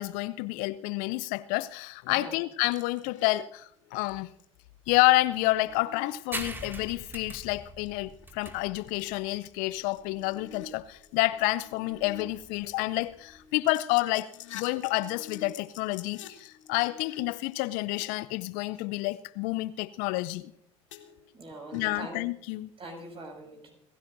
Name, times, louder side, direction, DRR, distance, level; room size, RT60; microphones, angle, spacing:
voice 1, 0.0-4.3 4.9-14.3 14.5-20.5 21.7-22.7, left 20 dB, 60° left, 0.5 m, -29 dB
sound 1, 2.7-3.4 3.8-4.1 4.4-4.5 5.0-6.8 7.4-7.6 7.9-8.0 8.2-10.7 11.0-12.2 12.5-18.0 20.9-21.4 21.7-22.2, left 7 dB, 75° left, 1.3 m, -48 dB
sound 2, 6.3-13.4, right 1 dB, 15° right, 2.2 m, -43 dB
voice 2, 21.3-22.2 22.8-23.7, right 2 dB, 35° right, 6.9 m, -43 dB
28.5 x 15.5 x 2.6 m
figure-of-eight pair, 65°, 16 cm